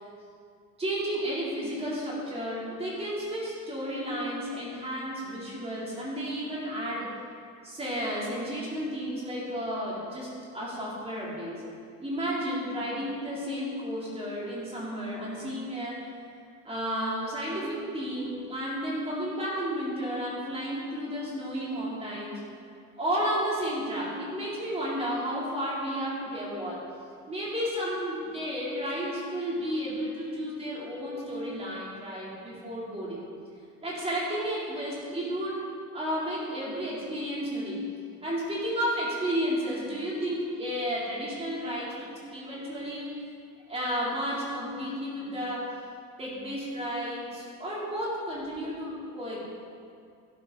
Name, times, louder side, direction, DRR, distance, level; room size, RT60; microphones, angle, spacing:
voice 1, 0.8-7.1 7.6-11.7 12.0-16.0 16.6-22.4 23.0-26.8 27.3-33.3 33.8-35.7 35.9-37.8 38.2-43.1 43.7-45.7 46.2-49.4, equal, 20° right, -6 dB, 3.8 m, -32 dB
16.5 x 11.5 x 4.2 m, 2.3 s
cardioid pair, 155°, 33 cm